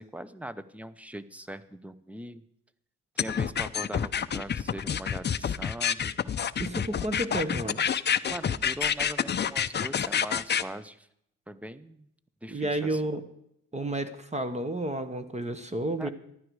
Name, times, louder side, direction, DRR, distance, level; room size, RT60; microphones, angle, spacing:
voice 1, 0.0-2.4 3.1-6.2 8.2-11.1 11.5-12.1 12.4-13.0 16.0-16.1, right 1 dB, 5° right, 15 dB, 0.8 m, -41 dB
sound 1, 3.2-10.6, left 8 dB, 35° left, 0.6 m, -28 dB
voice 2, 6.6-7.8 12.5-13.2 13.7-16.1, right 1 dB, 20° right, 10 dB, 1.4 m, -31 dB
14.5 x 12.0 x 4.8 m, 0.75 s
cardioid pair, 90°, 30 cm